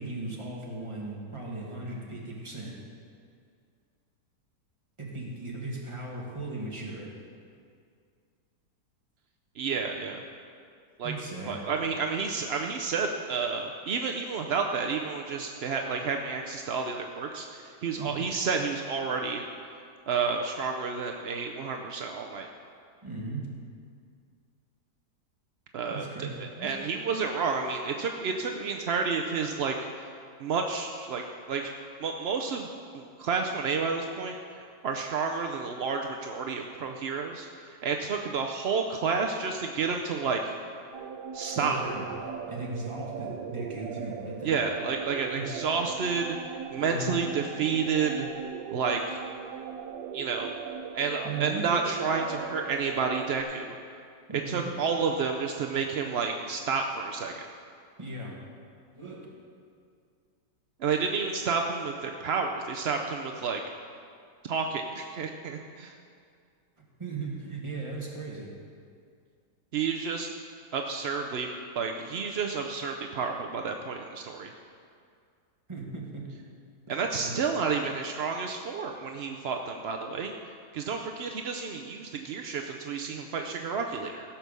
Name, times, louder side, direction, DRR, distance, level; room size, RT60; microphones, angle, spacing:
voice 1, 0.0-2.8 5.0-7.2 11.0-11.6 18.0-18.2 23.0-23.5 25.9-26.7 41.4-42.1 42.5-44.6 45.3-45.5 46.8-47.2 50.8-51.6 54.3-54.7 58.0-58.4 58.9-59.3 67.0-68.5 75.7-76.4 77.2-77.4, right 3 dB, 15° right, -3 dB, 1.9 m, -37 dB
voice 2, 9.6-10.2 11.0-11.1 11.5-19.5 20.1-22.5 25.7-30.1 30.4-31.7 32.0-32.7 32.9-40.5 41.3-41.8 44.4-46.4 46.7-48.3 48.7-49.2 50.1-50.5 50.9-53.8 54.5-57.4 60.8-63.6 64.4-65.9 69.7-70.3 70.7-71.5 71.7-74.5 76.9-80.3 80.7-84.2, right 5 dB, 65° right, 3 dB, 0.6 m, -30 dB
sound 1, 40.9-53.4, right 7 dB, 85° right, 1.3 m, -39 dB
16.5 x 5.9 x 6.7 m, 2.2 s
omnidirectional pair, 1.8 m